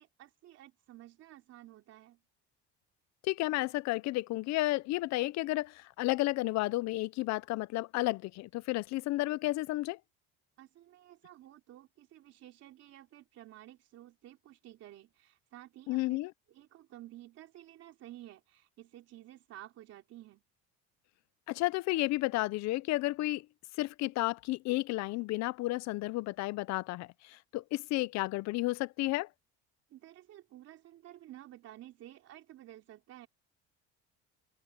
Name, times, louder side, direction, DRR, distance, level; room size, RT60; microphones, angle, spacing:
voice 1, 0.0-2.2 10.6-16.2 16.5-20.4 29.9-33.3, right 14 dB, 55° right, 3.4 m, -53 dB
voice 2, 3.2-10.0 15.9-16.3 21.5-23.5 23.8-29.3, left 19 dB, 65° left, 0.7 m, -32 dB
cardioid pair, 130°, 30 cm